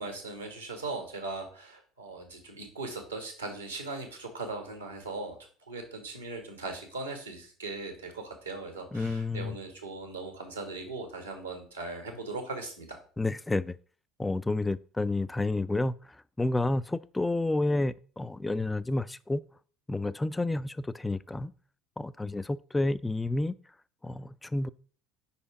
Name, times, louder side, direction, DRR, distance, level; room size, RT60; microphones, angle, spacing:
voice 1, 0.0-5.4 5.7-13.0, right 3 dB, 90° right, 1.4 m, -39 dB
voice 2, 8.9-9.6 13.2-13.8 14.2-15.9 16.4-19.4 19.9-21.5 22.0-23.5 24.0-24.7, left 2 dB, 10° left, 0.3 m, -30 dB
5.0 x 4.2 x 4.9 m
figure-of-eight pair, 60°, 0 cm